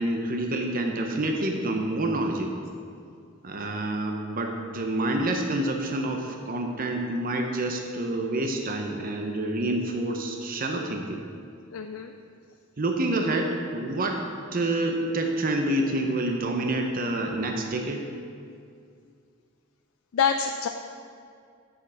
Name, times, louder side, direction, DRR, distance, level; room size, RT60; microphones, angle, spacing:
voice 1, 0.0-2.6 3.4-11.2 12.8-18.1, right 1 dB, 45° right, 3 dB, 0.7 m, -28 dB
voice 2, 11.7-12.1 20.1-20.7, left 6 dB, 90° left, 6 dB, 0.4 m, -26 dB
7.6 x 6.9 x 6.3 m, 2.3 s
head